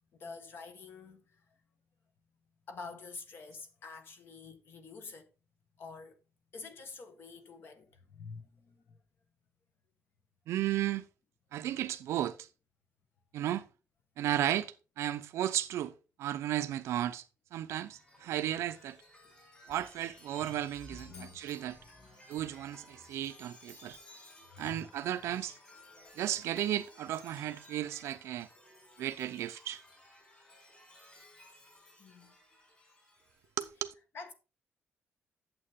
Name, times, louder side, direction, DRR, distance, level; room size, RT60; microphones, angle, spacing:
voice 1, 0.1-1.5 2.7-5.3 5.8-6.2 6.5-9.0 20.4-20.6 20.9-21.4 21.8-22.5 24.5-24.9 25.3-25.6 26.0-26.1 32.0-32.3 34.1-34.3, left 4 dB, 55° left, 1.5 m, -48 dB
voice 2, 10.5-11.0 11.5-12.4 13.3-13.6 14.2-15.9 16.2-17.2 17.5-19.0 19.7-21.8 22.3-24.0 24.6-25.5 26.2-28.5 29.0-29.8 33.6-33.9, right 12 dB, 90° right, 0.6 m, -34 dB
Chime, 17.7-33.5, left 1 dB, 30° left, 5.6 m, -57 dB
8.8 x 7.6 x 3.6 m
cardioid pair, 150°, 5 cm